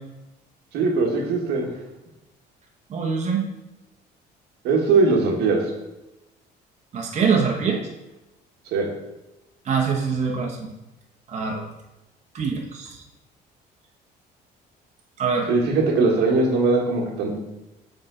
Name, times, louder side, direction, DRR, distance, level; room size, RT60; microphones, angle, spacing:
voice 1, 0.7-1.7 4.6-5.7 8.7-8.9 15.5-17.4, right 3 dB, 80° right, 0 dB, 1.4 m, -20 dB
voice 2, 2.9-3.5 6.9-7.8 9.7-10.7 11.3-11.6 12.3-12.9 15.2-15.5, right 5 dB, 45° right, -1 dB, 0.9 m, -24 dB
6.8 x 3.7 x 3.8 m, 0.99 s
cardioid pair, 110°, 17 cm